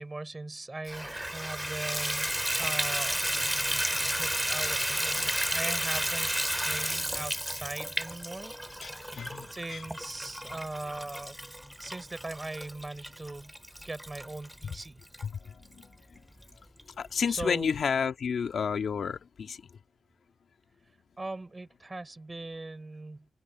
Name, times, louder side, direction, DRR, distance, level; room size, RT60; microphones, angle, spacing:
voice 1, 0.0-3.2 4.2-6.3 6.6-8.5 9.1-9.2 9.5-11.4 11.8-13.5 13.8-15.0 17.3-17.8 21.2-23.3, right 2 dB, 25° right, 6.3 m, -40 dB
Water tap faucet / Bathtub (filling or washing), 0.9-15.2 15.8-15.9 16.4-16.5 16.8-16.9, equal, 5° right, 2.4 m, -32 dB
voice 2, 9.1-9.8 15.2-15.9 17.0-19.6, left 6 dB, 75° left, 1.8 m, -31 dB
open air
cardioid pair, 80°, 0 cm